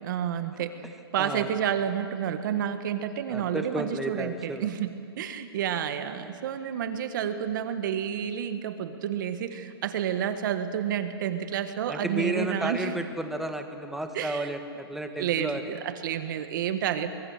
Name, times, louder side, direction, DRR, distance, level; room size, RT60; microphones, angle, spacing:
voice 1, 0.0-0.8 1.1-12.9 14.1-14.5 15.2-17.1, right 9 dB, 50° right, 9 dB, 1.6 m, -30 dB
voice 2, 1.2-1.5 3.3-4.7 6.2-6.3 11.9-15.7, right 1 dB, ahead, 6 dB, 1.4 m, -32 dB
24.5 x 22.0 x 6.7 m, 2.5 s
hypercardioid pair, 145°, 13 cm